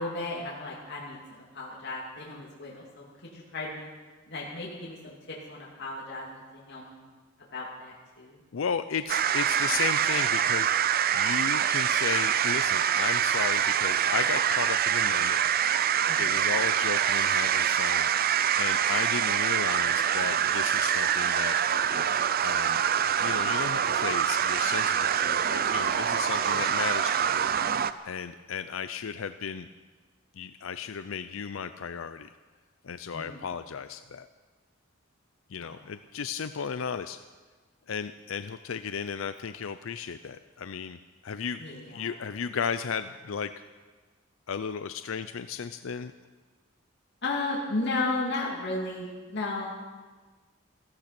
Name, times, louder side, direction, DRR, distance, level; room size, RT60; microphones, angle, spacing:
voice 1, 0.0-3.9 4.3-6.4 6.7-7.0 7.5-8.4 16.1-16.4 26.5-26.7 33.1-33.5 41.6-42.1 47.2-49.7, left 2 dB, 55° left, -5 dB, 2.8 m, -34 dB
voice 2, 8.5-15.4 16.2-21.6 22.4-22.8 23.2-27.5 28.0-29.7 30.4-32.3 32.8-34.3 35.5-37.2 37.9-41.6 41.9-43.5 44.5-46.1, left 6 dB, 75° left, 11 dB, 0.5 m, -34 dB
sound 1, 9.1-27.9, right 9 dB, 45° right, 0.5 m, -25 dB
15.5 x 15.0 x 6.0 m, 1.4 s
head